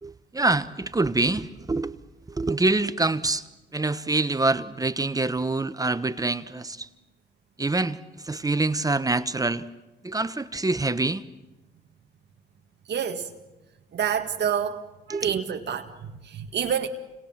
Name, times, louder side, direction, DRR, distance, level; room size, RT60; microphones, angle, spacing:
voice 1, 0.0-1.9 2.3-3.4 3.7-6.9 7.6-8.0 8.2-9.6 10.0-11.2 15.1-15.4, right 2 dB, 20° right, 1.1 m, -25 dB
voice 2, 12.9-13.3 13.9-14.8 15.1-16.9, right 8 dB, 60° right, 2.0 m, -28 dB
29.5 x 26.5 x 7.4 m
cardioid pair, 90°, 20 cm